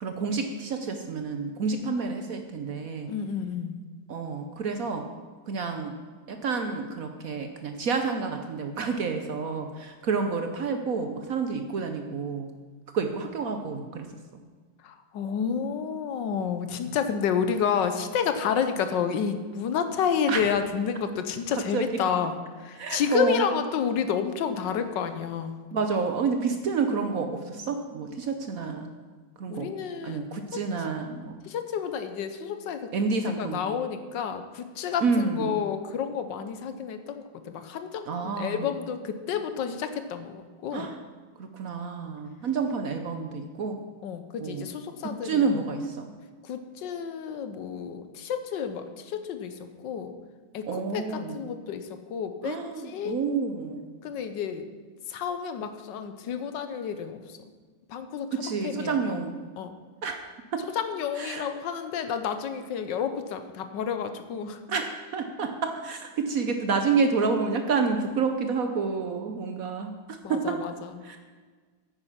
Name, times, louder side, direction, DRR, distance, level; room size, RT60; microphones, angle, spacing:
voice 1, 0.0-3.1 4.1-5.1 5.5-6.0 6.3-12.5 12.9-14.1 20.3-20.4 21.7-21.8 22.8-23.5 25.7-28.9 29.4-29.7 30.0-31.4 32.9-33.6 35.0-35.6 38.1-38.7 40.7-41.0 41.4-43.8 44.4-44.7 45.2-46.1 50.7-51.4 52.4-54.0 58.3-59.4 60.0-60.2 60.5-60.7 61.2-61.5 64.7-64.8 65.1-70.6 71.0-71.2, right 4 dB, 60° right, 5 dB, 1.0 m, -29 dB
voice 2, 3.1-3.7 14.8-25.6 29.5-30.6 31.4-32.9 33.4-40.9 44.0-45.5 46.4-50.1 50.5-53.2 54.0-54.7 55.1-57.4 57.9-58.3 58.6-59.2 59.6-59.8 60.7-64.6 70.2-71.2, left 7 dB, 70° left, 9 dB, 1.4 m, -30 dB
9.7 x 8.9 x 5.7 m, 1.5 s
omnidirectional pair, 2.1 m